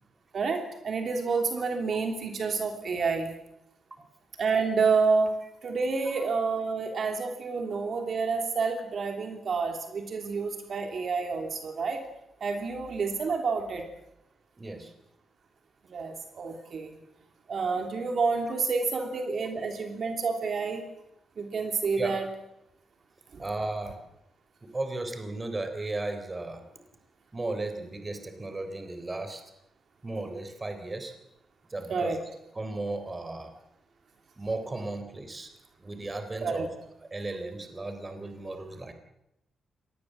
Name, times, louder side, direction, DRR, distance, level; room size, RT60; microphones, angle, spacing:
voice 1, 0.3-3.3 4.4-5.4 5.6-12.0 12.4-13.9 15.9-17.0 17.5-20.8 21.4-22.2 23.3-23.4 31.9-32.2 36.4-36.7, right 4 dB, 50° right, 4 dB, 3.0 m, -29 dB
voice 2, 14.6-14.9 22.0-22.2 23.4-24.0 24.6-26.6 27.3-29.4 30.0-31.1 31.7-32.2 32.6-33.5 34.4-35.5 35.8-36.7 37.1-38.9, right 2 dB, 20° right, 8 dB, 3.7 m, -35 dB
26.0 x 19.5 x 7.7 m, 0.84 s
wide cardioid pair, 140°, 0 cm